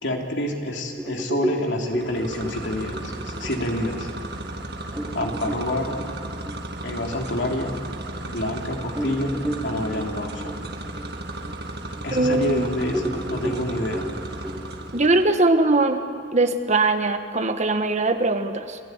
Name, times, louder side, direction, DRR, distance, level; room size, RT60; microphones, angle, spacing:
voice 1, 0.0-4.1 5.1-6.0 6.8-7.8 8.2-9.3 9.6-10.5 12.0-14.1, left 1 dB, 75° left, 1 dB, 3.2 m, -28 dB
sound 1, 1.0-8.0 8.5-8.6 8.9-12.5 12.9-16.0, right 1 dB, 5° right, 1.6 m, -33 dB
sound 2, 1.9-15.3, right 1 dB, 60° right, 1.8 m, -35 dB
voice 2, 12.1-12.7 14.9-16.0 16.3-18.8, right 2 dB, 40° right, 8 dB, 1.3 m, -21 dB
27.0 x 16.5 x 9.5 m, 2.3 s
head